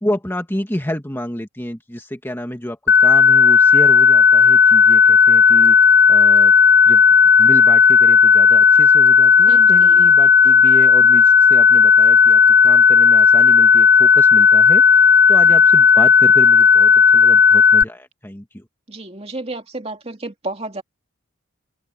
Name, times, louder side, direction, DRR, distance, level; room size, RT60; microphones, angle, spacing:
voice 1, 0.0-5.8 6.1-6.5 6.9-7.0 7.4-18.7, equal, 10° left, 1.8 m, -29 dB
sound 1, 2.9-17.8, left 6 dB, 45° left, 0.6 m, -11 dB
voice 2, 9.5-10.1 18.9-20.8, right 2 dB, 30° right, 2.5 m, -32 dB
open air
head